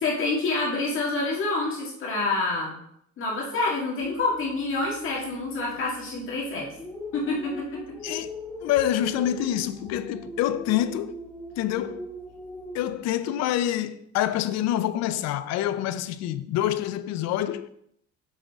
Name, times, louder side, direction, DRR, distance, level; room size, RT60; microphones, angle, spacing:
voice 1, 0.0-2.8 3.2-6.7 7.1-7.5, left 3 dB, 45° left, 1.7 m, -27 dB
sound 1, 4.0-12.9, left 2 dB, 5° left, 1.1 m, -40 dB
voice 2, 8.0-8.3 8.6-11.2 11.6-12.1 12.7-17.7, left 12 dB, 65° left, 0.5 m, -26 dB
6.3 x 5.1 x 3.5 m
cardioid pair, 150°, 29 cm